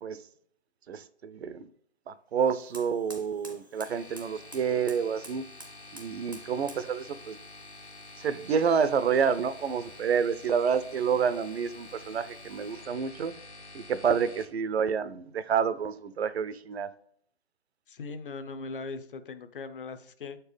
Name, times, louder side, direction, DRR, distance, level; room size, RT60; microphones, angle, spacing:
voice 1, 0.9-1.7 2.1-5.4 5.9-7.4 8.2-13.3 13.7-16.9, right 6 dB, 70° right, 0.6 m, -28 dB
Fire, 2.4-13.0, right 1 dB, 20° right, 0.4 m, -53 dB
sound 1, 3.8-14.4, left 2 dB, 75° left, 1.5 m, -48 dB
voice 2, 17.9-20.4, left 4 dB, 55° left, 0.6 m, -39 dB
6.6 x 4.4 x 3.2 m
hypercardioid pair, 165°, 33 cm